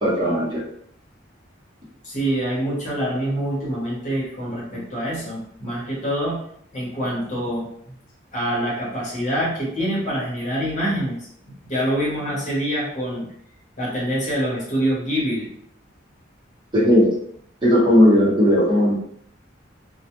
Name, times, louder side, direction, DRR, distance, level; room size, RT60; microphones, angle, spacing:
voice 1, 0.0-0.6 16.7-17.1 17.6-18.9, equal, 25° right, -7 dB, 0.8 m, -16 dB
voice 2, 2.0-6.4 6.7-7.7 8.3-11.2 11.7-13.3 13.8-15.5, equal, 40° left, -5 dB, 0.9 m, -25 dB
2.2 x 2.2 x 2.9 m, 0.67 s
head